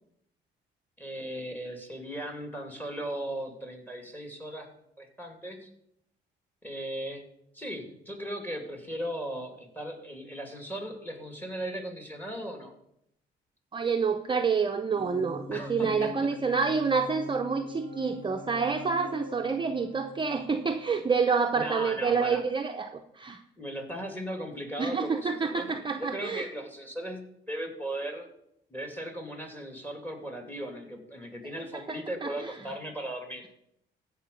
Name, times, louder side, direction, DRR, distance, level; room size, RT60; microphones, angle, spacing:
voice 1, 1.0-4.7 5.0-5.7 6.6-7.2 7.5-12.7 15.5-16.4 21.5-22.4 23.6-25.7 26.0-27.2 27.5-28.3 28.7-33.5, right 1 dB, 10° left, 4 dB, 2.3 m, -37 dB
voice 2, 13.7-23.4 24.8-26.5 31.9-32.5, right 5 dB, 25° right, 4 dB, 0.6 m, -28 dB
sound 1, 14.9-21.5, left 2 dB, 25° left, 2.4 m, -43 dB
15.0 x 5.0 x 5.3 m, 0.77 s
cardioid pair, 90°, 20 cm